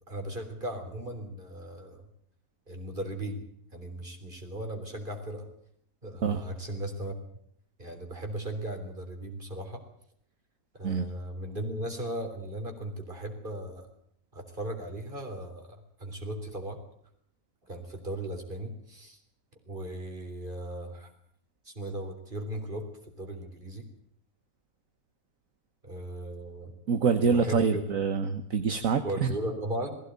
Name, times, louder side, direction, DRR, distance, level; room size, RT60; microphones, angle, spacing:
voice 1, 0.1-2.0 2.7-3.4 3.7-5.5 6.0-7.1 7.8-9.8 10.7-13.9 14.3-15.7 16.0-16.8 17.6-19.2 19.7-21.1 21.7-22.9 23.2-23.9 25.8-26.7 27.3-27.8 29.0-30.0, right 1 dB, 35° right, 5 dB, 3.7 m, -37 dB
voice 2, 26.9-29.3, right 5 dB, 60° right, 8 dB, 1.6 m, -26 dB
19.5 x 16.0 x 9.3 m, 0.68 s
omnidirectional pair, 1.6 m